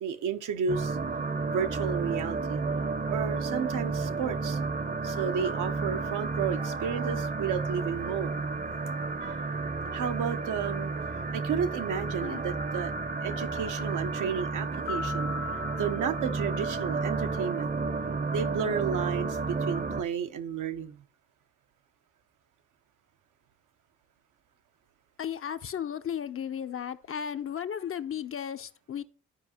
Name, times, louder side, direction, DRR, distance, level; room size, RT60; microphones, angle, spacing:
voice 1, 0.0-1.0 1.5-2.6 3.1-4.6 5.0-8.4 9.2-9.4 9.9-10.9 11.3-12.9 13.2-15.3 15.8-17.7 18.3-21.0, right 7 dB, 70° right, 0.7 m, -32 dB
sound 1, 0.7-20.0, right 4 dB, 30° right, 0.7 m, -32 dB
sound 2, 4.1-15.4, right 6 dB, 90° right, 1.3 m, -51 dB
sound 3, 14.9-17.4, left 4 dB, 75° left, 1.4 m, -40 dB
voice 2, 25.2-29.0, left 8 dB, 40° left, 0.5 m, -35 dB
12.5 x 4.7 x 2.8 m
supercardioid pair, 45°, 32 cm